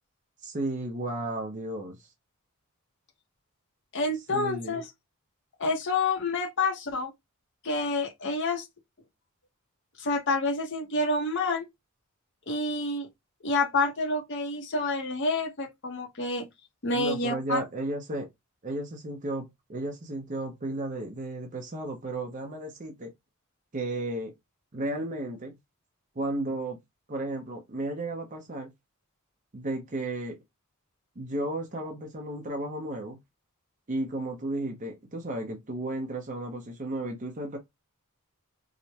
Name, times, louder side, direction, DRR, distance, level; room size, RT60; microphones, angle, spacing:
voice 1, 0.4-2.1 4.3-4.8 16.9-18.3 18.6-23.1 23.7-24.3 24.7-25.6 26.2-26.8 27.1-28.7 29.5-30.4 31.2-33.2 33.9-37.6, right 1 dB, 35° right, 0.7 m, -33 dB
voice 2, 3.9-4.8 5.6-7.1 7.6-8.7 10.0-11.6 12.5-13.1 13.4-16.5 16.8-17.6, left 2 dB, 55° left, 0.8 m, -28 dB
4.9 x 2.2 x 2.8 m
head